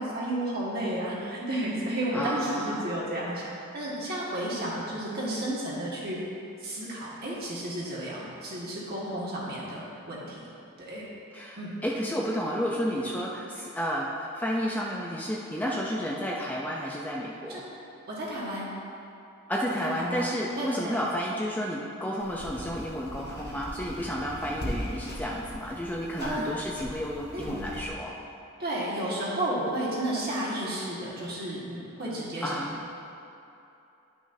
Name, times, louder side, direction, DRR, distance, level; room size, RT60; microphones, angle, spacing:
voice 1, 0.0-6.2 6.6-9.8 10.1-10.5 10.8-11.0 11.5-11.8 13.0-13.1 15.5-15.7 17.5-17.6 18.1-18.7 19.8-20.3 20.5-21.0 26.2-26.5 27.3-27.6 28.6-32.6, right 1 dB, 45° right, -6 dB, 1.6 m, -32 dB
voice 2, 2.1-2.9 11.3-17.7 19.5-28.1 32.4-32.8, equal, 10° left, -3 dB, 0.4 m, -31 dB
sound 1, 22.2-27.9, equal, 50° left, 1.5 m, -39 dB
11.0 x 6.2 x 2.7 m, 2.8 s
head